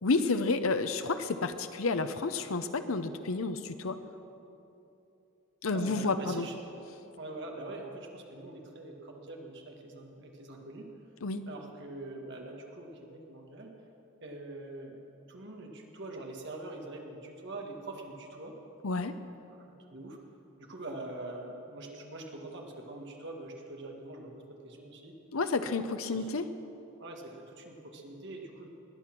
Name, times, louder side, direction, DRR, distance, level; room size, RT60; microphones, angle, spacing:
voice 1, 0.0-4.0 5.6-6.5 11.2-11.4 18.8-19.1 25.3-26.4, left 3 dB, 80° left, 10 dB, 0.8 m, -30 dB
voice 2, 5.7-6.6 7.2-10.9 11.5-13.7 14.2-15.0 15.3-18.5 19.6-20.2 20.6-25.2 26.0-26.4 27.0-28.7, right 2 dB, 55° right, 1 dB, 1.9 m, -44 dB
21.0 x 8.6 x 6.1 m, 2.9 s
head